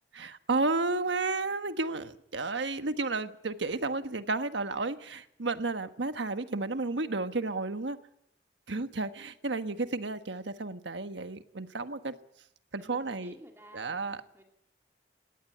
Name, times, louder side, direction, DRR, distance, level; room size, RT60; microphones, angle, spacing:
voice 1, 0.1-8.0 8.7-12.1 12.7-13.3 13.7-14.2, right 3 dB, 80° right, 1.3 m, -32 dB
voice 2, 12.8-14.4, right 1 dB, 15° right, 2.5 m, -54 dB
20.0 x 17.5 x 8.6 m
head